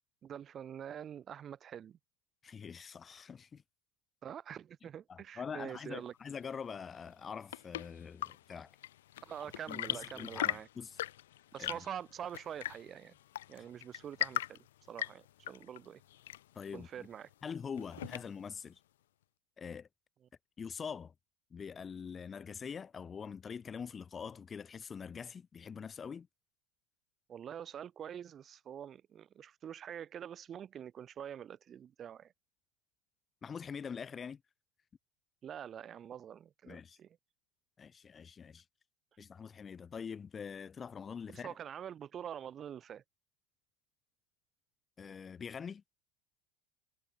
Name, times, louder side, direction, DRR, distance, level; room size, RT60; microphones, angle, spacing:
voice 1, 0.2-2.0 4.2-6.1 9.2-10.7 11.5-13.1 13.5-16.0 16.7-17.3 27.3-32.3 35.4-37.2 41.3-43.0, right 9 dB, 35° right, 4.5 m, -45 dB
voice 2, 2.4-3.6 5.1-8.7 9.7-11.0 11.6-11.7 16.5-17.1 17.4-18.8 19.6-19.9 20.6-21.1 21.5-26.3 33.4-34.4 36.7-37.0 37.8-38.6 39.2-41.5 45.0-45.8, left 6 dB, 25° left, 2.5 m, -44 dB
Chirp tweet / Engine / Tap, 7.1-18.6, left 13 dB, 90° left, 2.8 m, -41 dB
supercardioid pair, 100°, 0 cm